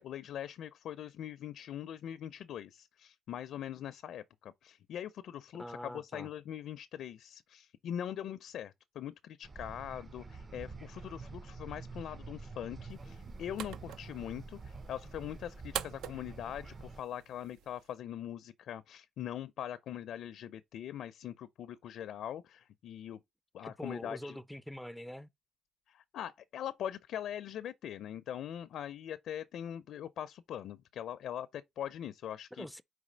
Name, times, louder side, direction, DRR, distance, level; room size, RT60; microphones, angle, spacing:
voice 1, 0.0-23.2 23.5-24.4 25.9-32.7, left 10 dB, 75° left, 0.4 m, -42 dB
voice 2, 5.5-6.3 23.6-25.3 32.5-32.8, equal, ahead, 0.4 m, -44 dB
sound 1, 9.4-17.0, right 3 dB, 35° right, 0.6 m, -47 dB
sound 2, 12.9-17.9, right 10 dB, 90° right, 0.5 m, -46 dB
4.7 x 4.1 x 5.0 m
cardioid pair, 90°, 0 cm